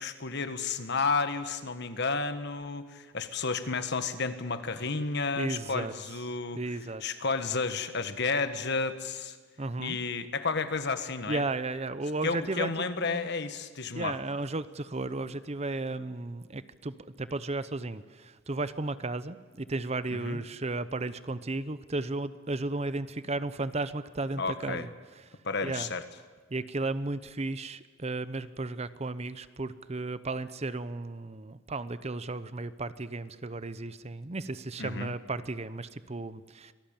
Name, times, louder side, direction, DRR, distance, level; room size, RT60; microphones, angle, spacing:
voice 1, 0.0-6.6 7.0-9.4 9.8-11.4 12.2-14.1 20.2-20.4 24.4-24.9 25.4-26.0 34.8-35.1, left 4 dB, 55° left, 10 dB, 1.5 m, -31 dB
voice 2, 5.4-5.9 6.5-7.0 9.6-10.0 11.3-13.3 13.9-24.9 25.6-25.9 26.5-36.7, right 2 dB, 30° right, 14 dB, 0.7 m, -34 dB
26.0 x 18.5 x 8.9 m, 1.5 s
head